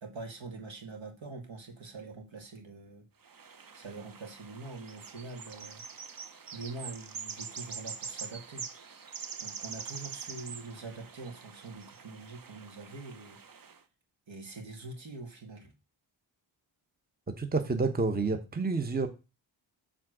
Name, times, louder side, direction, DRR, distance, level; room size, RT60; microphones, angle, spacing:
voice 1, 0.0-3.1 3.7-5.8 6.5-8.7 9.4-13.4 14.3-15.7, right 3 dB, 75° right, 2 dB, 2.1 m, -44 dB
sound 1, 3.2-13.8, right 6 dB, 45° right, 1.0 m, -44 dB
voice 2, 17.3-19.1, right 3 dB, 20° right, 7 dB, 0.9 m, -29 dB
7.4 x 3.7 x 6.0 m, 0.29 s
cardioid pair, 80°, 46 cm